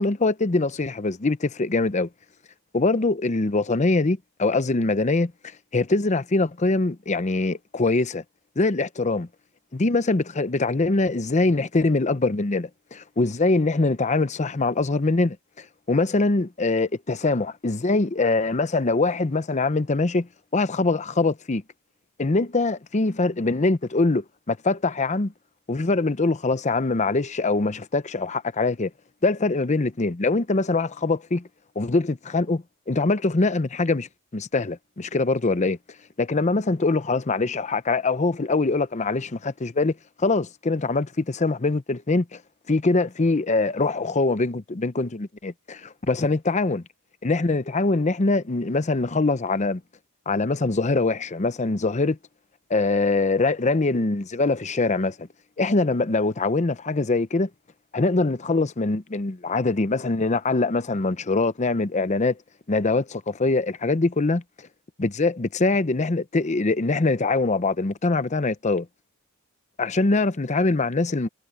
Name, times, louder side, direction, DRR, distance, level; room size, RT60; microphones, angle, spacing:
voice 1, 0.0-2.1 2.7-5.3 5.7-8.2 8.6-9.3 9.7-21.6 22.2-25.3 25.7-28.9 29.2-31.5 31.8-35.8 36.2-42.4 42.7-46.8 47.2-49.8 50.3-52.2 52.7-55.3 55.6-57.5 57.9-62.4 62.7-64.4 65.0-68.9 69.8-71.3, left 3 dB, 35° left, 0.7 m, -23 dB
head